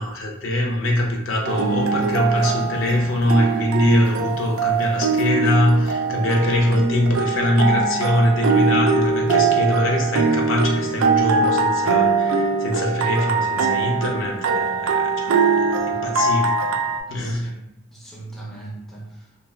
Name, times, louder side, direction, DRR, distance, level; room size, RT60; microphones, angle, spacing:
voice 1, 0.0-16.8 17.1-17.5, left 1 dB, 70° left, 0 dB, 0.5 m, -22 dB
sound 1, 1.4-17.0, right 4 dB, 75° right, 0.3 m, -22 dB
voice 2, 17.1-19.4, right 2 dB, ahead, -5 dB, 0.5 m, -39 dB
2.3 x 2.3 x 3.2 m, 0.79 s
head